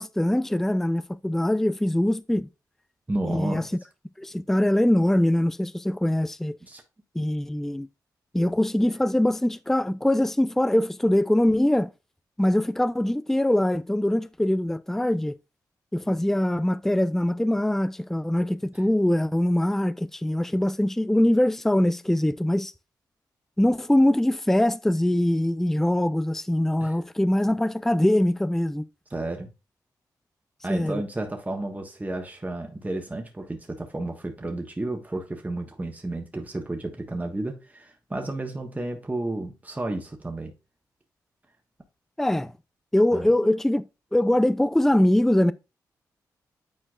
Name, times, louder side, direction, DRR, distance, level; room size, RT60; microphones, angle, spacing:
voice 1, 0.0-2.5 3.2-3.6 4.2-6.6 7.2-7.9 8.3-11.9 12.4-15.4 15.9-22.7 23.6-28.8 30.7-31.0 42.2-42.5 42.9-43.9 44.1-45.5, left 1 dB, 5° left, 0.4 m, -23 dB
voice 2, 3.1-3.7 6.6-6.8 18.7-18.8 26.8-27.0 29.1-29.5 30.6-40.5 43.1-43.3, right 2 dB, 20° right, 1.4 m, -32 dB
9.0 x 4.5 x 2.4 m
cardioid pair, 55°, 8 cm